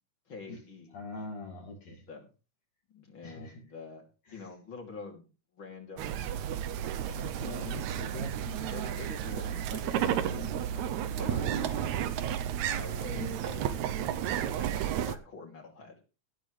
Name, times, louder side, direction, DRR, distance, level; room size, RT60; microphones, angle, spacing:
voice 1, 0.3-1.0 2.1-2.3 2.9-4.1 4.3-5.3 5.5-6.3 7.3-7.7 8.7-10.9 11.2-12.2 12.7-13.8 14.6-16.0, left 4 dB, 40° left, 1 dB, 3.5 m, -46 dB
voice 2, 0.9-2.0 3.2-3.6 4.3-4.4 7.1-8.6 10.4-10.6 11.3-11.4 13.1-13.4, left 3 dB, 65° left, -2 dB, 3.5 m, -42 dB
sound 1, 6.0-15.2, right 10 dB, 75° right, 2.1 m, -32 dB
18.0 x 8.9 x 3.3 m, 0.32 s
omnidirectional pair, 3.4 m